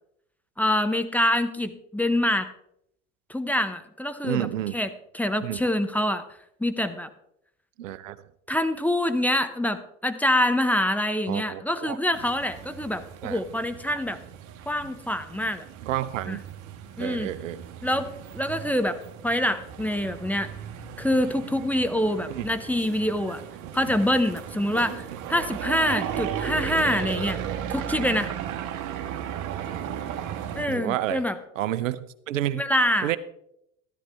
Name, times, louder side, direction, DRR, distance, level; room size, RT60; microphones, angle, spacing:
voice 1, 0.6-2.5 3.3-4.5 4.7-4.9 5.1-6.2 6.6-7.1 8.5-14.2 14.7-15.6 16.3-16.4 17.0-17.3 17.8-18.1 18.3-19.0 19.2-20.5 21.0-23.4 23.7-27.4 27.7-28.3 30.5-31.4 32.5-33.1, left 1 dB, 5° left, 8 dB, 0.8 m, -25 dB
voice 2, 4.2-4.8 5.4-5.6 7.8-8.2 11.3-12.0 13.2-13.4 15.8-16.4 17.0-17.6 22.3-22.4 30.7-31.2 31.6-32.6 33.0-33.2, right 13 dB, 70° right, 16 dB, 0.7 m, -30 dB
sound 1, 12.1-30.6, right 9 dB, 50° right, 1.4 m, -36 dB
13.0 x 13.0 x 3.5 m, 0.75 s
figure-of-eight pair, 75°, 40 cm